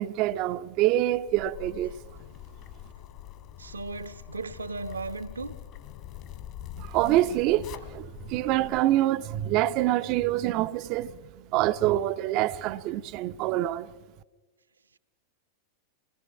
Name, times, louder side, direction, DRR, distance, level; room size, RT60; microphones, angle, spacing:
voice 1, 0.0-1.9 6.8-11.1 11.5-13.9, right 14 dB, 40° right, 0.7 m, -26 dB
Zipper (clothing), 1.3-8.8, left 11 dB, 40° left, 2.0 m, -44 dB
voice 2, 3.6-5.5, right 3 dB, 75° right, 1.0 m, -36 dB
27.0 x 20.5 x 6.0 m
figure-of-eight pair, 90°, 0 cm